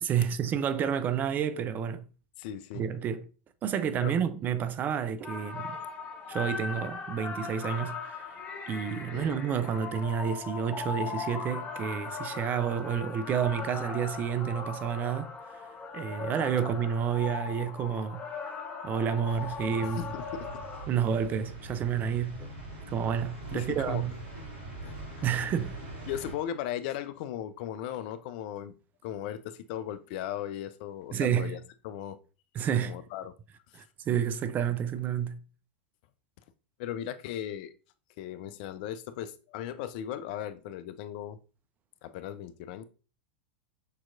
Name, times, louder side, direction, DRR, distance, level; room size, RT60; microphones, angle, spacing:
voice 1, 0.0-2.1 2.7-3.2 3.6-5.7 6.3-8.0 8.7-15.3 15.9-18.3 18.8-20.1 20.9-22.5 22.9-24.1 25.2-25.8 31.1-31.6 32.6-33.0 33.7-35.4, right 8 dB, 30° right, 0.4 m, -30 dB
voice 2, 2.4-2.8 4.0-4.1 9.1-9.4 19.8-20.3 23.5-24.0 24.8-24.9 26.1-28.7 29.0-32.2 32.8-33.3 33.7-33.8 36.8-37.7 38.2-41.4 42.0-42.8, left 11 dB, 50° left, 0.4 m, -37 dB
sound 1, 5.2-20.8, left 5 dB, 25° left, 0.8 m, -39 dB
sound 2, 19.2-26.3, right 1 dB, 50° right, 2.4 m, -43 dB
6.5 x 2.9 x 2.4 m
figure-of-eight pair, 90°, 6 cm